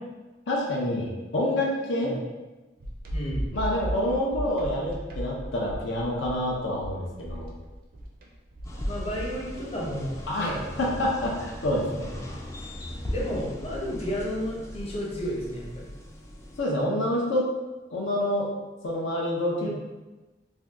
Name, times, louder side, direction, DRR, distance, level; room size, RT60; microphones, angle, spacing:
voice 1, 0.5-2.1 3.5-7.5 10.3-12.1 16.6-17.5 17.9-18.5 18.8-19.7, left 1 dB, 80° left, -3 dB, 0.5 m, -27 dB
sound 1, 2.8-9.6, equal, 50° right, 0.5 m, -35 dB
voice 2, 3.1-3.4 8.8-10.6 11.8-12.3 13.1-15.9 19.6-19.7, equal, 35° left, -5 dB, 0.7 m, -32 dB
sound 2, 8.6-16.6, equal, 15° left, 0.3 m, -38 dB
2.6 x 2.2 x 3.4 m, 1.1 s
head